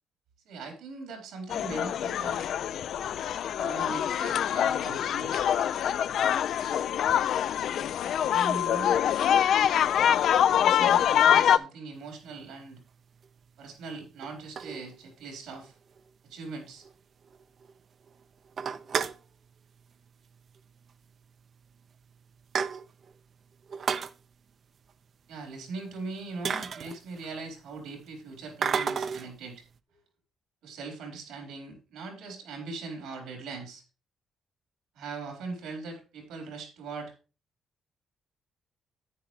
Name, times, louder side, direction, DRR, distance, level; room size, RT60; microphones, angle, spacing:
voice 1, 0.5-2.5 3.6-5.5 8.2-9.0 10.4-12.8 13.6-15.8 16.2-16.9 25.3-29.6 29.9-30.0 30.6-33.8 34.9-37.1, right 3 dB, 90° right, 2 dB, 4.0 m, -40 dB
sound 1, 1.5-11.6, left 9 dB, 70° left, 0.4 m, -25 dB
sound 2, 12.3-12.5 13.2-13.3 14.2-15.2 15.6-15.7 16.0-16.1 16.4-16.5 16.8-16.9 17.3-17.7 18.1-18.2 18.5-19.3 20.4-20.6 20.9-21.0 21.7-21.8 22.1-23.1 23.7-24.1 25.8-25.9 26.4-27.5 28.6-29.3, right 6 dB, 50° right, 0.5 m, -32 dB
10.0 x 9.1 x 3.2 m, 0.34 s
cardioid pair, 90°, 0 cm